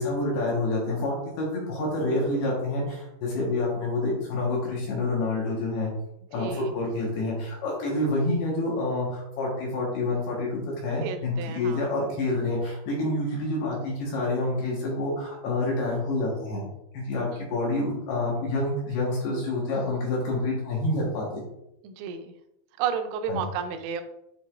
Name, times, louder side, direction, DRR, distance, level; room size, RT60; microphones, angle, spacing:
voice 1, 0.0-5.9 6.3-16.6 16.9-21.4 23.3-23.4, left 2 dB, 70° left, -4 dB, 2.7 m, -28 dB
voice 2, 6.3-6.7 11.0-11.8 17.3-17.5 21.8-22.3 22.8-24.0, right 7 dB, 90° right, 7 dB, 3.3 m, -32 dB
10.5 x 3.9 x 2.4 m, 0.84 s
omnidirectional pair, 5.8 m